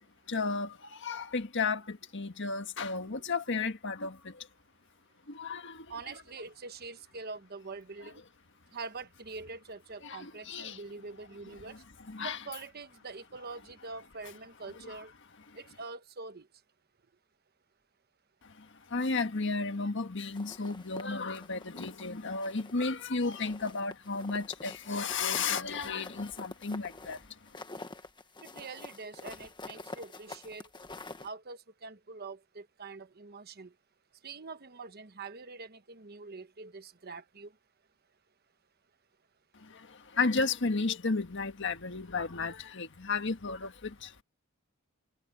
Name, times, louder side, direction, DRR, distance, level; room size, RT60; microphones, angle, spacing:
voice 1, 0.3-4.5 5.3-5.9 10.0-10.8 12.1-12.4 14.9-15.0 18.4-27.3 39.5-44.1, left 4 dB, 60° left, 1.6 m, -33 dB
voice 2, 5.9-8.2 8.7-11.8 12.2-15.1 15.5-16.5 28.4-30.7 31.2-33.7 34.2-37.5, right 4 dB, 50° right, 1.1 m, -44 dB
sound 1, 20.3-22.1 22.4-23.0 23.3-31.3, left 2 dB, 20° left, 1.4 m, -47 dB
head